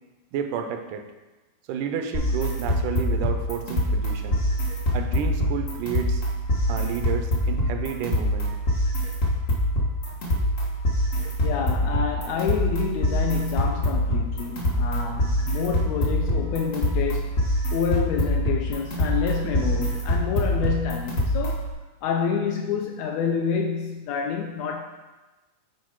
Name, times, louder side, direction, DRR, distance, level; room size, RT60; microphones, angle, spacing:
voice 1, 0.3-1.1 1.7-4.4 4.9-6.2 6.7-8.5, right 7 dB, 85° right, 6 dB, 2.2 m, -31 dB
sound 1, 2.1-21.7, equal, 60° left, 0.8 m, -25 dB
voice 2, 11.4-21.7 22.0-24.8, left 6 dB, 80° left, 2 dB, 1.7 m, -28 dB
8.3 x 4.7 x 4.7 m, 1.2 s
omnidirectional pair, 3.5 m